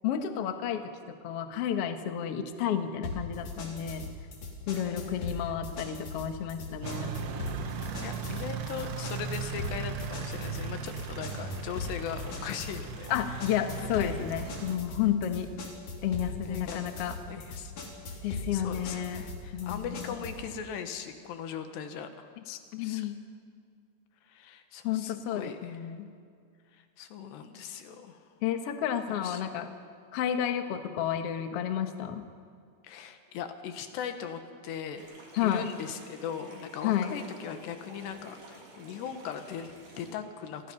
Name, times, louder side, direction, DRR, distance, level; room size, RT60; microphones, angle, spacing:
voice 1, 0.0-4.1 4.7-7.1 13.1-15.5 16.0-17.1 18.2-19.2 19.5-20.1 22.5-23.2 24.8-26.1 28.4-29.7 30.1-32.2 35.3-35.6 36.8-37.1, left 9 dB, 65° left, 6 dB, 1.5 m, -31 dB
sound 1, 3.0-20.5, left 3 dB, 50° left, 4.1 m, -40 dB
voice 2, 4.7-5.6 8.0-13.4 13.8-14.2 16.4-16.9 17.3-17.7 18.3-23.1 24.2-25.9 26.7-28.2 29.1-29.4 32.8-35.1 35.4-40.7, left 7 dB, 90° left, 7 dB, 3.6 m, -39 dB
sound 2, 6.8-14.8, right 7 dB, 90° right, 1.3 m, -38 dB
sound 3, 35.0-40.1, right 2 dB, 55° right, 4.8 m, -51 dB
29.5 x 23.0 x 5.5 m, 2.2 s
omnidirectional pair, 4.8 m